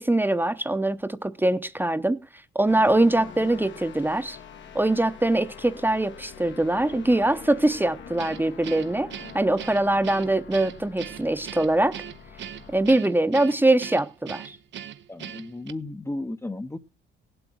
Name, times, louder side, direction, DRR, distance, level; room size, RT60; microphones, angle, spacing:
voice 1, 0.0-4.4 4.7-9.1 9.3-12.0 12.7-14.6, right 2 dB, 10° right, 0.9 m, -23 dB
sound 1, 2.7-13.0, left 7 dB, 65° left, 1.6 m, -44 dB
Guitar, 8.2-15.7, right 10 dB, 65° right, 0.9 m, -40 dB
voice 2, 15.1-16.8, left 2 dB, 15° left, 0.9 m, -34 dB
17.0 x 8.0 x 6.3 m
cardioid pair, 90°, 20 cm